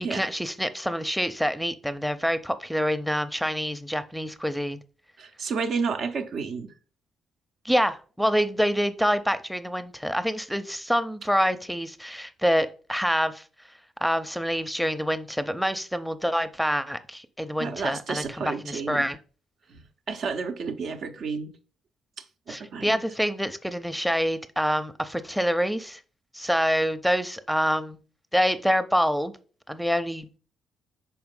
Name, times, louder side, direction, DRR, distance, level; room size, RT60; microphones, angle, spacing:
voice 1, 0.0-4.8 7.6-13.4 14.0-19.2 22.5-26.0 26.3-28.0 28.3-29.3 29.7-30.3, equal, ahead, 0.7 m, -26 dB
voice 2, 5.2-6.7 17.6-19.1 19.7-19.8 20.1-21.6 22.2-23.0, right 5 dB, 60° right, 0.7 m, -31 dB
5.7 x 4.3 x 3.8 m
hypercardioid pair, 50°, 0 cm